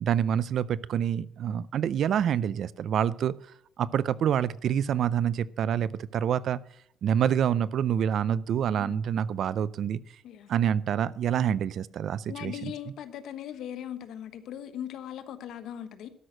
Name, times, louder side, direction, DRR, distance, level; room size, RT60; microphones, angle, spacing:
voice 1, 0.0-3.3 3.8-6.6 7.0-10.0 10.5-12.7, right 9 dB, 60° right, 0.4 m, -27 dB
voice 2, 8.8-9.2 10.2-10.5 12.3-16.1, left 10 dB, 70° left, 1.2 m, -39 dB
12.5 x 6.2 x 6.4 m
cardioid pair, 125°, 0 cm